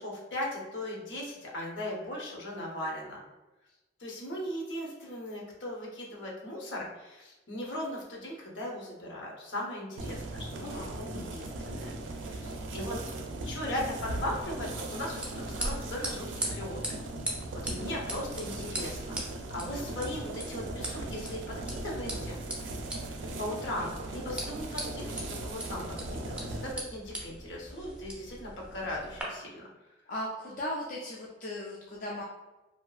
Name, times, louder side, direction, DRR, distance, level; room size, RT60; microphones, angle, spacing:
voice 1, 0.0-3.2 4.0-11.9 12.2-13.0 13.4-16.3 16.5-16.8 17.6-22.4 23.4-29.7, left 1 dB, 70° left, -3 dB, 0.8 m, -38 dB
Boiling porridge, 10.0-26.7, right 2 dB, 90° right, 0.4 m, -38 dB
voice 2, 10.5-10.9 30.1-32.2, left 1 dB, 45° left, -4 dB, 0.4 m, -37 dB
sound 1, 14.4-29.2, right 1 dB, 5° right, 0.5 m, -41 dB
2.7 x 2.3 x 2.3 m, 1.1 s
head